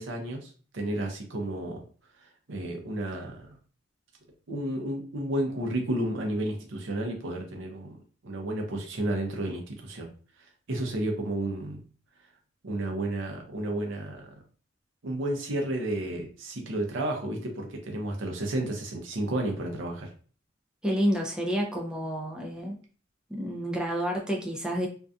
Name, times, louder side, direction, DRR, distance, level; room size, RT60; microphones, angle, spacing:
voice 1, 0.0-1.8 2.2-3.6 4.5-10.1 10.4-11.8 12.6-14.4 15.0-20.1, right 1 dB, 70° right, 2 dB, 0.6 m, -32 dB
voice 2, 20.8-22.8 23.3-24.9, equal, 5° right, -1 dB, 0.4 m, -29 dB
2.6 x 2.2 x 2.3 m, 0.40 s
head